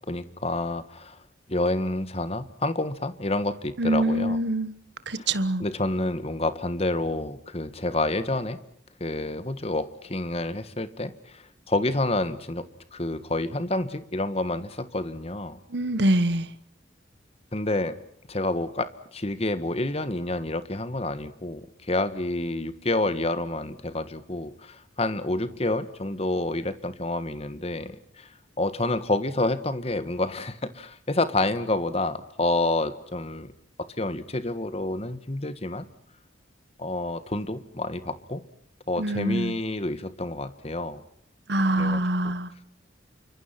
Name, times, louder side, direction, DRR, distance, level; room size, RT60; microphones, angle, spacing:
voice 1, 0.1-1.2 1.5-4.4 5.1-5.3 5.6-8.6 9.0-12.7 12.9-15.6 17.5-17.9 18.3-28.3 28.6-33.5 33.8-35.8 36.8-38.4 38.9-41.0 41.8-42.3, left 2 dB, 35° left, 1.6 m, -28 dB
voice 2, 3.8-4.7 5.1-5.7 15.7-16.5 39.0-39.6 41.5-42.5, right 1 dB, 65° right, 1.3 m, -24 dB
29.0 x 25.0 x 5.9 m
head